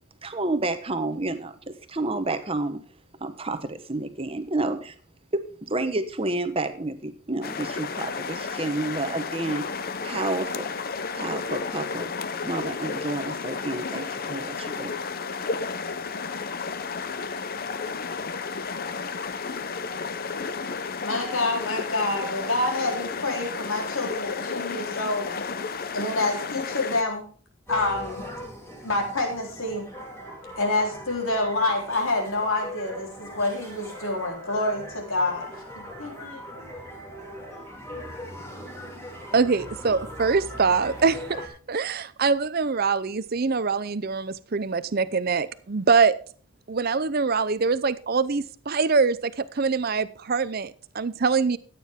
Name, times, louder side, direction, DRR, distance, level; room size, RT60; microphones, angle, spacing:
voice 1, 0.2-2.8 3.2-4.9 5.3-9.6 10.0-10.7 11.2-12.1 12.4-14.9, right 2 dB, 25° right, 10 dB, 1.0 m, -30 dB
sound 1, 7.4-27.0, left 5 dB, 45° left, 0.7 m, -32 dB
voice 2, 21.0-25.4 25.9-27.2 27.7-28.2 28.8-29.8 30.6-35.5 35.8-36.5, left 2 dB, 70° left, 1 dB, 3.7 m, -27 dB
sound 2, 27.7-41.5, equal, 10° left, 2.8 m, -40 dB
voice 3, 39.3-46.1 46.7-51.6, right 4 dB, 45° right, 15 dB, 0.6 m, -24 dB
13.5 x 9.3 x 3.6 m, 0.42 s
head